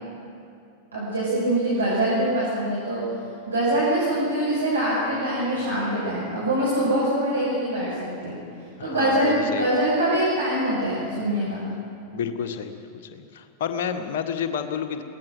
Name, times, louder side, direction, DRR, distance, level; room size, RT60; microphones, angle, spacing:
voice 1, 0.9-3.0 3.5-8.3 8.8-11.7, right 1 dB, 75° right, -8 dB, 6.1 m, -24 dB
voice 2, 8.8-9.7 12.1-12.8 13.1-15.0, left 7 dB, 55° left, 6 dB, 1.6 m, -30 dB
23.0 x 18.0 x 6.3 m, 2.6 s
figure-of-eight pair, 90°, 0 cm